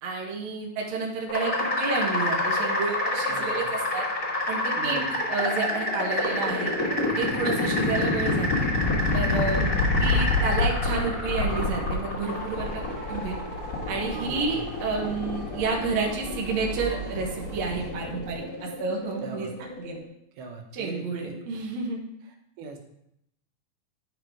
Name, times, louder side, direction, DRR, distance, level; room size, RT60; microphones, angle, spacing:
voice 1, 0.0-4.0 4.5-5.0 5.3-6.7 7.2-8.7 9.1-9.7 10.0-12.8 13.1-13.3 13.9-19.5 19.8-20.0 20.7-22.0, right 4 dB, 60° right, -1 dB, 2.3 m, -30 dB
sound 1, 1.3-20.0, left 2 dB, 75° left, 0.8 m, -27 dB
voice 2, 3.3-3.7 4.8-5.2 6.9-7.4 14.1-14.6 19.2-19.5 20.4-21.4 22.6-22.8, right 4 dB, 90° right, 3 dB, 3.0 m, -39 dB
Motor vehicle (road) / Siren, 12.2-17.9, right 1 dB, 40° right, 2.6 m, -40 dB
10.5 x 4.9 x 4.6 m, 0.76 s
omnidirectional pair, 4.3 m